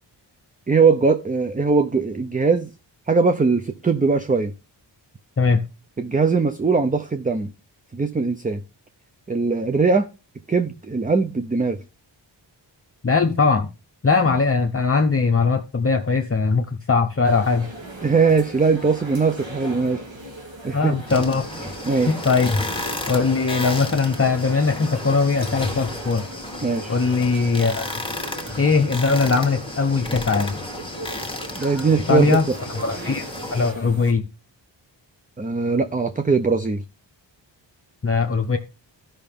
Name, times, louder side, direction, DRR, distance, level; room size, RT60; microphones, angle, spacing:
voice 1, 0.7-2.7 3.1-4.5 6.0-7.5 7.9-8.6 9.3-10.1 10.5-11.8 18.0-20.0 20.6-21.0 21.8-22.1 26.6-26.9 31.5-32.4 35.4-36.8, right 4 dB, 20° right, 0.5 m, -20 dB
voice 2, 13.0-13.7 14.0-17.7 20.7-21.5 22.1-22.5 23.1-26.2 26.9-27.9 28.6-30.6 32.1-32.5 32.8-33.2 33.5-34.2 38.0-38.6, left 4 dB, 30° left, 0.8 m, -20 dB
sound 1, 17.2-34.1, right 1 dB, 85° right, 2.3 m, -38 dB
sound 2, 21.1-33.7, left 1 dB, 10° left, 1.5 m, -32 dB
14.0 x 5.6 x 3.5 m
wide cardioid pair, 100°, 45 cm